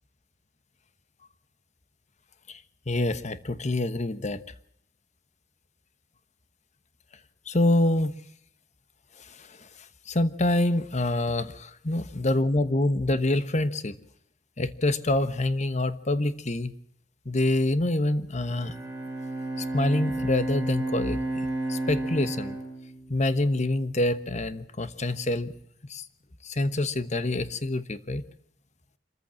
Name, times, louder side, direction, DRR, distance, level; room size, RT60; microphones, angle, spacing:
voice 1, 2.9-4.4 7.5-8.1 10.1-14.0 14.6-16.7 17.2-18.7 19.7-21.2 21.7-22.6 23.1-25.5 25.9-26.0 26.4-28.2, left 1 dB, 40° left, 13 dB, 1.2 m, -26 dB
Bowed string instrument, 18.3-23.7, right 2 dB, 10° right, 5.7 m, -32 dB
26.0 x 14.5 x 7.6 m, 0.72 s
head